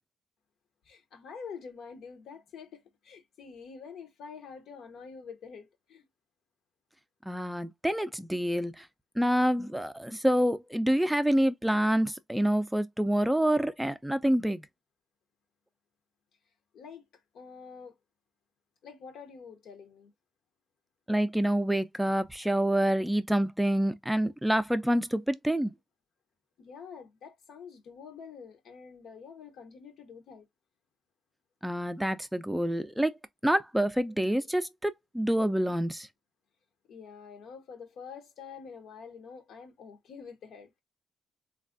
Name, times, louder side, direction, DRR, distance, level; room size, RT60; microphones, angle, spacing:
voice 1, 0.8-6.0 16.7-18.0 18.8-20.1 26.6-30.5 36.9-40.8, left 6 dB, 70° left, 0.7 m, -47 dB
voice 2, 7.3-8.9 9.2-14.6 21.1-25.7 31.6-33.1 33.4-36.1, right 1 dB, 5° right, 0.4 m, -27 dB
3.3 x 2.3 x 2.5 m
cardioid pair, 90°, 0 cm